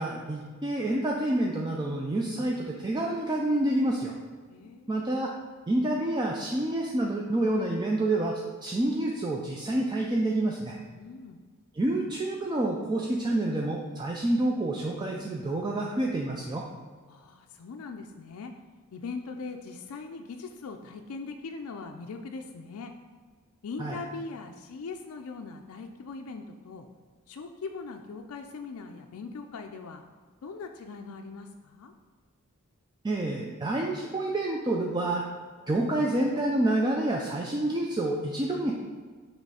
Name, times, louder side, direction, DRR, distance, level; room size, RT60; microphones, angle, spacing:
voice 1, 0.0-4.1 4.9-5.3 5.7-10.8 11.7-16.6 23.8-24.0 33.0-35.2 35.7-38.7, right 1 dB, 20° right, -1 dB, 0.4 m, -28 dB
voice 2, 4.5-5.0 10.9-11.4 17.1-18.5 18.9-22.9 23.6-26.9 27.3-30.0 30.4-31.9, left 4 dB, 65° left, 4 dB, 0.4 m, -40 dB
6.6 x 3.1 x 4.8 m, 1.5 s
head